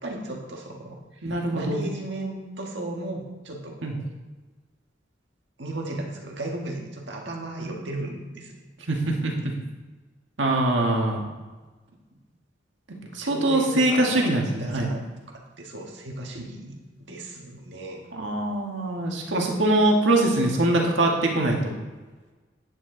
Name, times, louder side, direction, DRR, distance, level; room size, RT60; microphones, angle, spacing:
voice 1, 0.0-4.0 5.6-8.6 9.4-9.5 11.9-12.0 13.0-18.1, right 2 dB, 70° right, 0 dB, 1.7 m, -35 dB
voice 2, 1.2-1.8 3.8-3.9 8.9-9.5 10.4-11.2 13.1-14.9 18.1-21.7, right 1 dB, 90° right, 0 dB, 1.7 m, -23 dB
9.8 x 9.5 x 3.9 m, 1.2 s
head